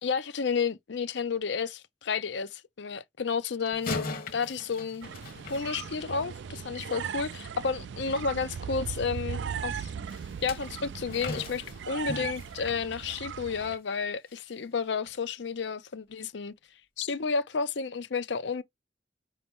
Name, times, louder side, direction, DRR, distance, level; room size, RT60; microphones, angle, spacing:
voice 1, 0.0-3.9 4.3-5.1 5.5-9.9 10.4-16.5 17.0-18.6, left 5 dB, 65° left, 0.6 m, -31 dB
sound 1, 3.7-6.3 10.1-13.9 14.3-14.5 15.1-15.2, left 3 dB, 50° left, 1.1 m, -39 dB
sound 2, 5.0-13.8, right 7 dB, 65° right, 0.4 m, -38 dB
5.2 x 2.7 x 3.5 m
head